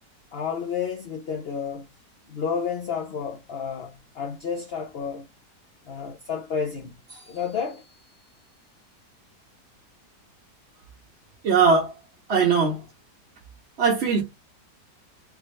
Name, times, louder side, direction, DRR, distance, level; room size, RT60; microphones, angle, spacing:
voice 1, 0.3-1.9 2.3-5.3 5.9-8.2, left 6 dB, 60° left, 0.6 m, -31 dB
voice 2, 11.4-11.9 12.3-12.8 13.8-14.2, right 5 dB, 50° right, 0.8 m, -20 dB
3.4 x 3.0 x 3.0 m
omnidirectional pair, 1.9 m